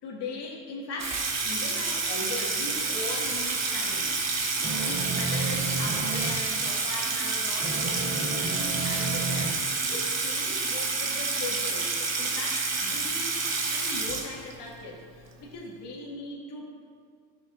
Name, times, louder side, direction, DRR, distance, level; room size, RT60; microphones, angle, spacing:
voice 1, 0.0-4.1 4.8-16.8, left 2 dB, 50° left, -3 dB, 2.2 m, -39 dB
Water tap faucet / Sink (filling or washing), 1.0-14.7, right 4 dB, 30° right, 1.5 m, -29 dB
sound 1, 4.6-6.4 7.6-9.5, right 3 dB, 15° right, 0.6 m, -32 dB
12.5 x 6.9 x 2.6 m, 2.1 s
supercardioid pair, 85°, 50 cm